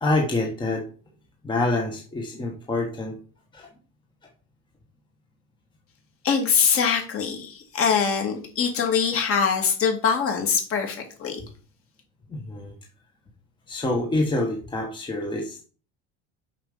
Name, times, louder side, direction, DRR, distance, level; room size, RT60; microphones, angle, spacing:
voice 1, 0.0-0.8 1.4-3.2 3.5-3.7 12.3-12.7 13.7-15.6, left 2 dB, 15° left, 0 dB, 1.4 m, -26 dB
voice 2, 6.2-11.4, left 6 dB, 40° left, 2 dB, 2.6 m, -23 dB
7.5 x 5.7 x 5.0 m, 0.37 s
cardioid pair, 150°, 34 cm